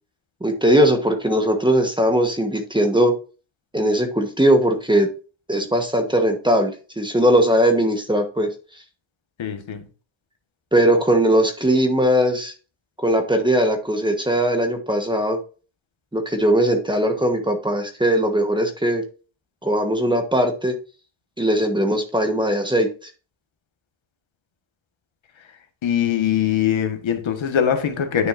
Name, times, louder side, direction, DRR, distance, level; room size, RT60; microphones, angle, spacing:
voice 1, 0.4-3.1 3.7-5.1 5.5-8.5 10.7-12.5 13.0-15.4 16.1-19.0 19.6-20.7 21.4-22.9, right 1 dB, 10° right, 1.2 m, -19 dB
voice 2, 9.4-9.9 25.8-28.3, left 9 dB, 70° left, 1.5 m, -22 dB
9.8 x 6.3 x 2.6 m
wide cardioid pair, 155°, 48 cm